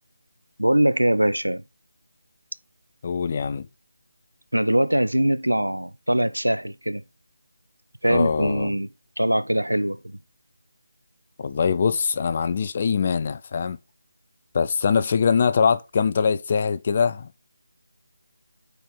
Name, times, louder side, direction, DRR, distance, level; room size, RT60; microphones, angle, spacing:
voice 1, 0.6-1.6 4.5-7.0 8.0-8.9 9.2-10.2, right 1 dB, 90° right, 0.6 m, -22 dB
voice 2, 3.0-3.7 8.1-8.7 11.4-13.8 14.5-17.3, left 6 dB, 35° left, 0.6 m, -23 dB
5.1 x 4.6 x 5.4 m
figure-of-eight pair, 160°, 0 cm